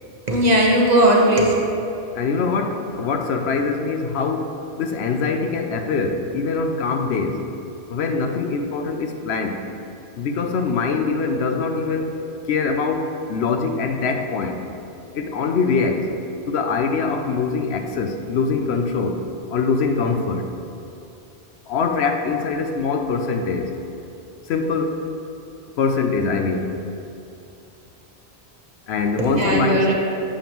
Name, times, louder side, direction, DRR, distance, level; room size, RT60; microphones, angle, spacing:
voice 1, 0.3-1.5 29.2-29.9, right 1 dB, 40° right, -2 dB, 1.1 m, -17 dB
voice 2, 2.1-7.4 7.9-9.7 10.2-12.2 12.5-14.6 15.1-16.1 16.5-19.2 19.5-20.5 21.7-23.7 24.5-25.0 25.8-26.8 28.9-29.9, left 4 dB, 75° left, 5 dB, 0.9 m, -23 dB
9.1 x 7.1 x 3.0 m, 2.8 s
omnidirectional pair, 1.1 m